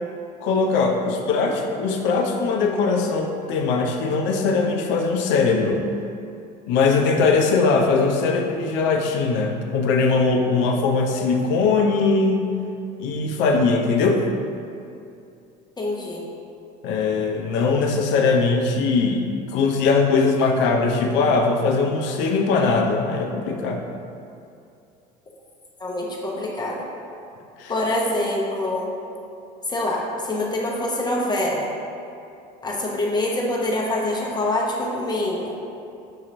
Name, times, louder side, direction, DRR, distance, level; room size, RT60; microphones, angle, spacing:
voice 1, 0.4-5.8 6.7-12.4 13.0-14.2 16.8-23.8 27.6-27.7, left 4 dB, 60° left, 3 dB, 0.6 m, -20 dB
voice 2, 15.8-16.2 25.8-26.8 27.7-28.9 29.7-31.7 32.6-35.5, left 1 dB, 20° left, -3 dB, 0.8 m, -25 dB
6.3 x 2.8 x 2.6 m, 2.6 s
hypercardioid pair, 75°, 21 cm